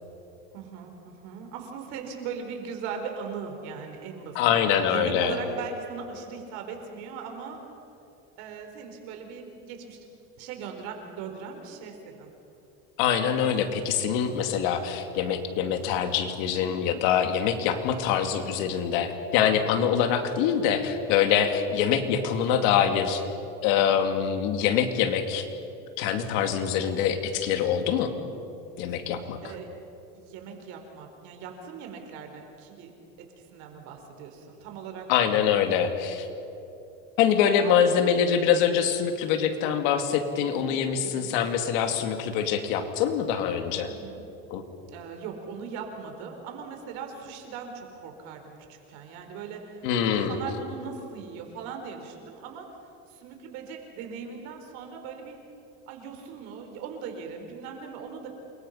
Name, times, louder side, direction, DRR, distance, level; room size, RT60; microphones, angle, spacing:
voice 1, 0.5-7.6 8.4-10.0 10.4-12.3 29.4-29.7 30.1-32.9 33.4-35.1 37.6-38.3 40.5-41.3 43.9-44.2 44.9-52.7 53.1-55.4 55.9-58.3, right 6 dB, 70° right, 4 dB, 4.5 m, -39 dB
voice 2, 4.3-5.4 13.0-23.2 23.6-25.5 26.0-28.1 28.8-29.4 35.1-36.3 37.2-43.9 44.5-44.6 49.8-50.4, left 8 dB, 70° left, 6 dB, 2.5 m, -24 dB
28.5 x 23.0 x 5.7 m, 2.8 s
cardioid pair, 135°, 29 cm